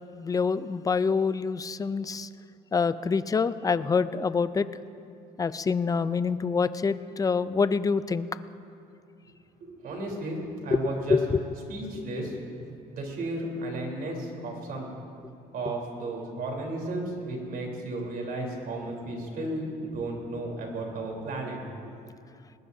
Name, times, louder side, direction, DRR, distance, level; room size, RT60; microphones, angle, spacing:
voice 1, 0.1-2.3 2.7-4.7 5.4-8.3 10.7-11.4 11.9-12.0, left 5 dB, 20° left, 14 dB, 0.5 m, -26 dB
voice 2, 9.6-11.2 11.7-12.4 12.9-14.9 15.5-21.6 21.8-22.0, right 2 dB, 60° right, 0 dB, 3.8 m, -34 dB
21.0 x 19.5 x 2.8 m, 2.5 s
cardioid pair, 110°, 17 cm